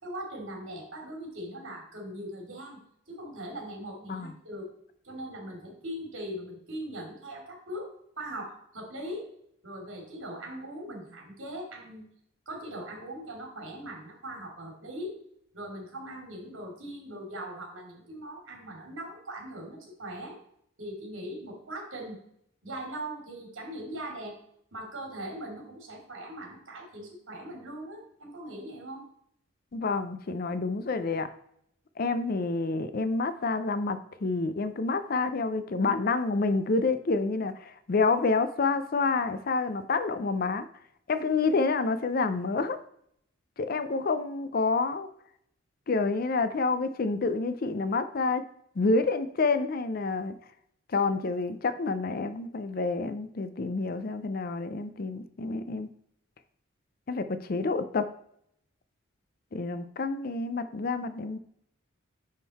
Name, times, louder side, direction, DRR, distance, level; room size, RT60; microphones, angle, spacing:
voice 1, 0.0-2.8 3.1-4.7 5.0-7.9 8.2-9.3 9.6-12.1 12.5-15.2 15.5-20.4 20.8-22.2 22.6-24.4 24.7-29.0, right 1 dB, 75° right, 0 dB, 2.7 m, -40 dB
voice 2, 29.7-31.3 32.0-40.7 41.1-42.8 43.6-45.1 45.9-48.4 48.8-50.3 50.9-55.9 57.1-58.1 59.5-61.4, left 3 dB, 45° left, 11 dB, 0.5 m, -28 dB
10.0 x 3.8 x 4.1 m, 0.70 s
head